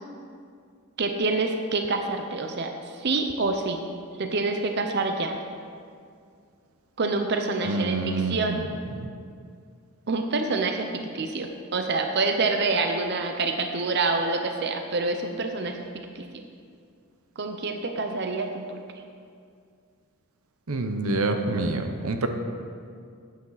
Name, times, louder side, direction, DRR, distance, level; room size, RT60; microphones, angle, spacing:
voice 1, 1.0-2.7 3.0-3.8 4.2-5.4 7.0-8.6 10.1-15.8 16.2-16.3 17.4-18.8, right 3 dB, 50° right, 5 dB, 0.7 m, -27 dB
voice 2, 7.6-8.6 8.9-9.1 20.7-22.3, right 2 dB, 90° right, 6 dB, 0.9 m, -27 dB
13.0 x 8.9 x 4.0 m, 2.3 s
head